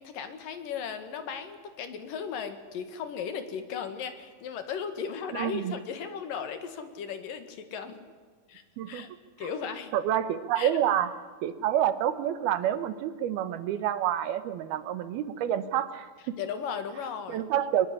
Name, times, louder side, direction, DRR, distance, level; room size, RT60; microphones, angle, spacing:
voice 1, 0.0-8.0 8.5-9.1 9.4-9.9 10.6-10.7 16.4-17.5, left 7 dB, 65° left, 9 dB, 3.5 m, -36 dB
voice 2, 5.3-5.8 8.8-9.0 9.9-11.1 11.4-16.4 17.3-17.9, right 11 dB, 85° right, 13 dB, 3.1 m, -28 dB
24.5 x 20.5 x 9.9 m, 1.5 s
omnidirectional pair, 4.3 m